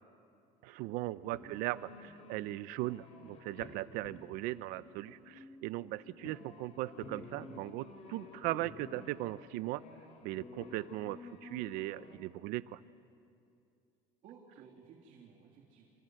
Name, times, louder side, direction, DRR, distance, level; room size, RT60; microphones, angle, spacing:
voice 1, 0.6-1.9 2.3-9.8 10.2-12.8, right 17 dB, 80° right, 16 dB, 0.8 m, -38 dB
sound 1, 1.3-12.2, left 3 dB, 50° left, 3.5 m, -52 dB
voice 2, 14.2-15.9, right 7 dB, 60° right, -2 dB, 3.4 m, -56 dB
27.5 x 26.5 x 8.0 m, 2.5 s
cardioid pair, 145°, 15 cm